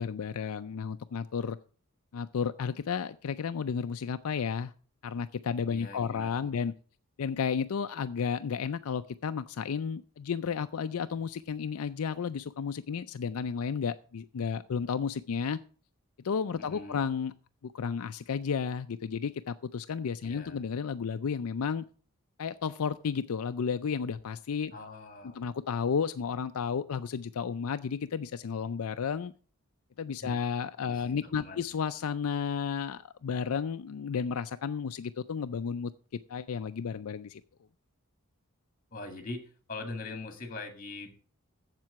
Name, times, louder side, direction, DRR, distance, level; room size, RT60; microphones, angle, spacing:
voice 1, 0.0-1.6 2.1-4.7 5.0-6.7 7.2-15.6 16.2-17.3 17.6-21.8 22.4-24.7 25.3-29.3 30.0-35.9 36.3-37.4, left 6 dB, 80° left, 10 dB, 0.4 m, -32 dB
voice 2, 5.7-6.6 16.6-17.0 20.2-20.6 24.7-25.4 30.2-30.4 30.8-31.6 38.9-41.1, left 3 dB, 40° left, 6 dB, 1.9 m, -42 dB
7.6 x 7.5 x 6.9 m, 0.41 s
head